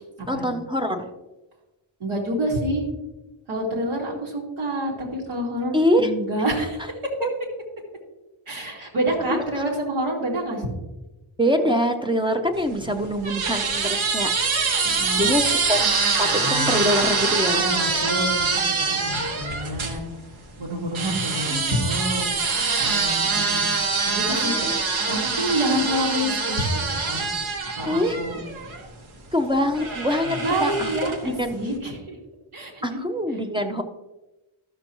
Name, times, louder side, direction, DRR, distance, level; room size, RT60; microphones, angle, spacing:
voice 1, 0.3-1.1 5.7-6.1 7.2-7.3 9.3-9.4 11.4-14.3 15.0-15.8 16.2-17.6 21.5-21.7 24.3-24.8 27.9-28.2 29.3-30.9 31.2-31.6 32.8-33.8, equal, 10° right, 5 dB, 0.5 m, -24 dB
voice 2, 2.0-2.8 3.5-6.9 8.5-10.8 11.5-11.8 14.8-15.3 17.5-18.5 18.9-20.1 20.6-22.2 22.8-23.7 24.1-27.3 27.8-28.4 30.4-32.2 32.5-33.0, right 1 dB, 85° right, -3 dB, 2.6 m, -28 dB
sound 1, 12.6-20.0 20.9-28.9 29.7-31.3, right 4 dB, 70° right, 1.4 m, -24 dB
13.0 x 6.7 x 3.0 m, 1.1 s
wide cardioid pair, 175°, 49 cm